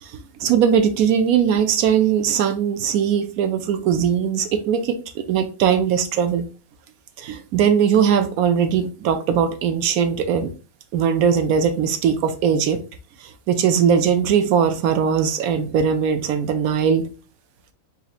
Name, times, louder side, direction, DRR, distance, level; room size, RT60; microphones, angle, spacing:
voice 1, 0.0-4.9 5.3-6.4 7.2-10.5 10.9-12.8 13.2-17.0, right 7 dB, 85° right, 8 dB, 1.1 m, -20 dB
4.1 x 4.1 x 2.4 m, 0.35 s
omnidirectional pair, 1.5 m